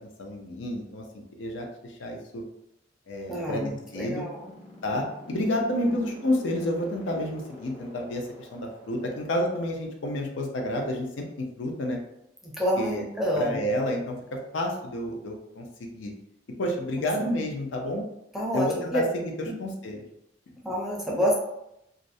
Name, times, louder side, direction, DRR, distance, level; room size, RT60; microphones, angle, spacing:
voice 1, 0.2-1.0 1.4-2.4 3.1-4.2 4.8-12.0 12.8-13.0 13.3-14.2 14.5-16.1 16.6-18.0 18.5-19.0 19.6-20.0, left 1 dB, 80° left, 1 dB, 0.4 m, -30 dB
voice 2, 3.3-4.5 12.4-13.6 17.0-17.3 18.3-19.0 19.5-19.6 20.6-21.3, equal, ahead, -4 dB, 0.4 m, -28 dB
sound 1, 3.8-9.8, equal, 35° left, 0.7 m, -47 dB
2.4 x 2.0 x 2.6 m, 0.82 s
head